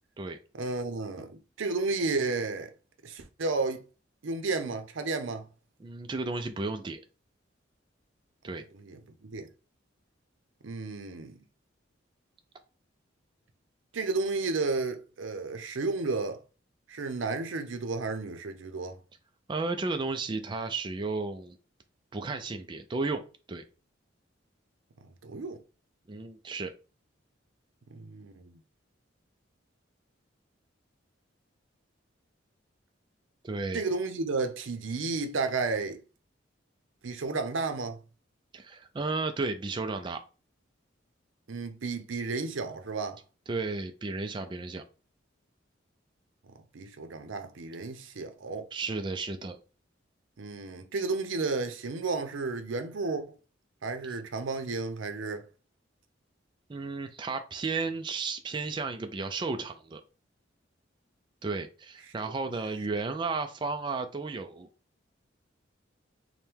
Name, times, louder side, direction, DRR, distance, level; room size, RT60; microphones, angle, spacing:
voice 1, 0.6-2.7 3.0-3.8 4.2-5.5 8.7-9.5 10.6-11.4 13.9-16.4 16.9-19.0 25.2-25.6 27.9-28.6 33.7-36.0 37.0-38.0 41.5-43.2 46.7-48.7 50.4-53.3 53.8-55.5, right 3 dB, 85° right, 0.6 m, -32 dB
voice 2, 5.8-7.0 8.4-8.6 19.5-21.6 22.1-23.6 26.1-26.7 33.4-33.8 38.5-40.2 43.5-44.8 48.7-49.6 54.1-54.2 56.7-60.0 61.4-64.7, right 3 dB, 25° right, 0.3 m, -33 dB
4.4 x 2.1 x 3.4 m
head